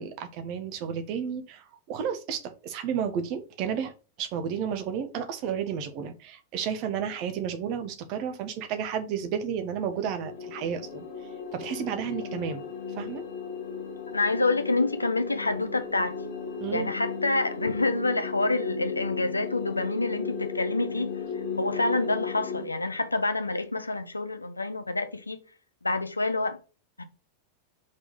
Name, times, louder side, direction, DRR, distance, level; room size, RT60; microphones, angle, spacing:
voice 1, 0.0-3.9 4.2-11.0 11.5-12.6 13.0-13.2 16.6-16.9, right 7 dB, 45° right, 1.2 m, -32 dB
sound 1, 9.9-22.6, left 5 dB, 55° left, 1.6 m, -36 dB
voice 2, 14.1-16.2 16.7-21.2 21.6-25.4 25.8-26.6 27.0-27.1, left 2 dB, 80° left, 0.8 m, -27 dB
5.2 x 4.2 x 5.4 m
figure-of-eight pair, 90°, 0 cm